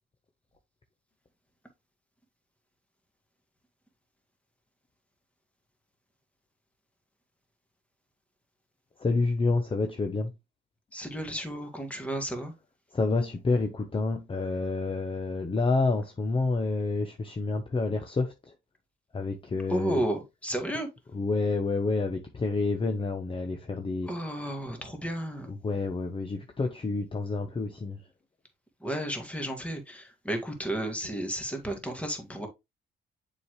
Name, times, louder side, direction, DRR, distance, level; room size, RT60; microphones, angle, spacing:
voice 1, 9.0-10.3 12.9-18.3 19.1-20.0 21.1-24.1 25.6-28.0, left 3 dB, 25° left, 0.9 m, -28 dB
voice 2, 10.9-12.5 19.7-20.9 24.0-25.5 28.8-32.5, right 1 dB, 5° left, 1.9 m, -33 dB
7.0 x 4.9 x 3.1 m
cardioid pair, 90°, 20 cm